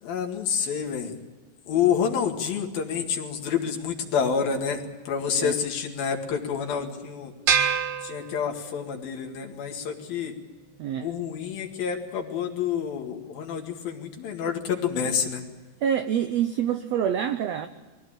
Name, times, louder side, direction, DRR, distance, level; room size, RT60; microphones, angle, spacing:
voice 1, 0.0-1.1 1.7-7.3 8.0-10.3 11.0-15.4, left 7 dB, 85° left, 1 dB, 3.8 m, -28 dB
sound 1, 7.5-9.0, right 7 dB, 55° right, 2.6 m, -26 dB
voice 2, 10.8-11.1 15.8-17.7, right 9 dB, 85° right, 9 dB, 1.4 m, -26 dB
22.0 x 16.5 x 8.9 m, 1.3 s
omnidirectional pair, 4.1 m